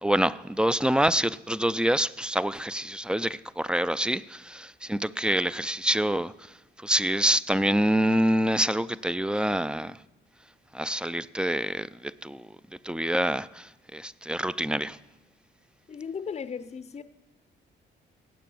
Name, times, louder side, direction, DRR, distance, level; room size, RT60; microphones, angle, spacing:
voice 1, 0.0-6.3 6.8-10.0 10.7-12.5 12.8-15.0, right 1 dB, 5° right, 0.4 m, -26 dB
voice 2, 15.9-17.0, left 6 dB, 35° left, 0.7 m, -36 dB
17.5 x 9.0 x 7.7 m
cardioid pair, 90°, 20 cm